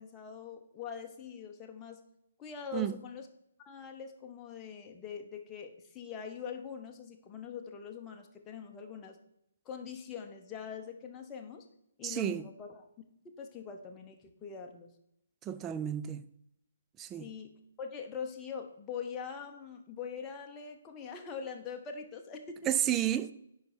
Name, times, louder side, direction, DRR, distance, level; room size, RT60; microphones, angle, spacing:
voice 1, 0.0-2.0 2.4-3.3 3.6-9.2 9.6-11.7 12.0-12.9 13.4-14.9 17.2-22.7, left 6 dB, 15° left, 1.0 m, -43 dB
voice 2, 12.0-12.4 15.4-16.2 17.0-17.3 22.7-23.3, right 11 dB, 15° right, 0.4 m, -31 dB
10.5 x 5.1 x 4.4 m
figure-of-eight pair, 135°, 0 cm